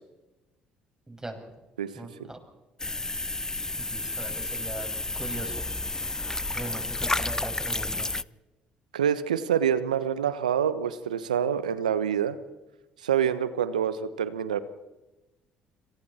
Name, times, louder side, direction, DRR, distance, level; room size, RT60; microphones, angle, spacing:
voice 1, 1.1-1.4 1.9-2.4 3.8-4.9 5.1-5.5 6.5-8.1, right 2 dB, 15° right, 4 dB, 6.3 m, -39 dB
sound 1, 2.8-8.2, left 2 dB, 15° left, 0.6 m, -31 dB
voice 2, 8.9-12.4 13.0-14.6, right 8 dB, 90° right, 14 dB, 1.1 m, -26 dB
27.0 x 26.0 x 4.4 m, 1.1 s
hypercardioid pair, 55°, 4 cm